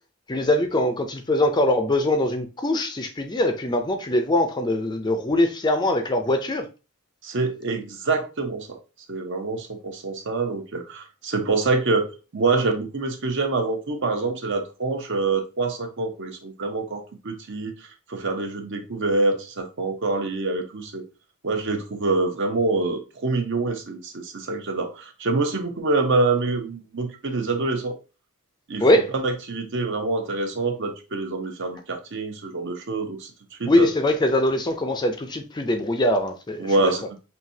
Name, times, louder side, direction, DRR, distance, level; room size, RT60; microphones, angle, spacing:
voice 1, 0.3-6.7 28.8-29.1 33.6-36.7, left 1 dB, 20° left, 0.4 m, -22 dB
voice 2, 7.2-8.8 9.1-17.7 18.1-21.0 21.4-28.0 28.7-28.9 29.1-33.3 33.6-33.9 36.6-37.1, right 3 dB, 55° right, 0.8 m, -26 dB
5.7 x 2.7 x 2.7 m
head